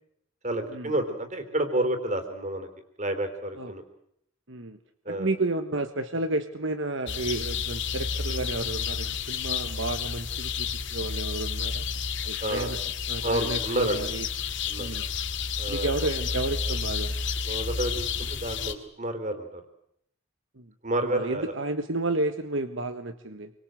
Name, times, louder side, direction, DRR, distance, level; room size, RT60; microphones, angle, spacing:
voice 1, 0.4-2.7 3.0-3.8 5.1-5.3 12.4-12.7 13.2-14.1 14.7-14.9 15.6-16.1 17.4-19.6 20.8-21.5, right 1 dB, 35° right, 9 dB, 3.9 m, -30 dB
voice 2, 4.5-4.8 5.1-11.8 12.2-12.8 13.1-14.3 14.8-15.1 15.7-17.1 20.6-20.7 21.0-23.5, right 2 dB, 65° right, 8 dB, 1.6 m, -31 dB
sound 1, 7.1-18.7, left 6 dB, 60° left, 2.4 m, -31 dB
28.5 x 24.0 x 7.9 m, 0.73 s
head